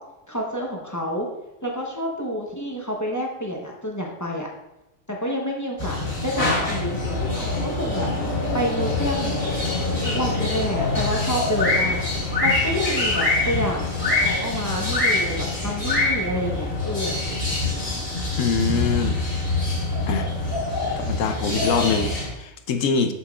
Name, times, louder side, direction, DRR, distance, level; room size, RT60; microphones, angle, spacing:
voice 1, 0.3-1.3 1.6-4.5 5.1-8.1 8.5-9.3 10.0-12.0 12.4-17.6, equal, 15° left, -1 dB, 0.8 m, -29 dB
sound 1, 5.8-22.3, left 2 dB, 40° left, 2.3 m, -24 dB
voice 2, 18.4-19.2 20.1-20.3 21.0-23.1, left 5 dB, 85° left, 7 dB, 1.0 m, -24 dB
7.0 x 6.5 x 2.4 m, 0.97 s
omnidirectional pair, 1.3 m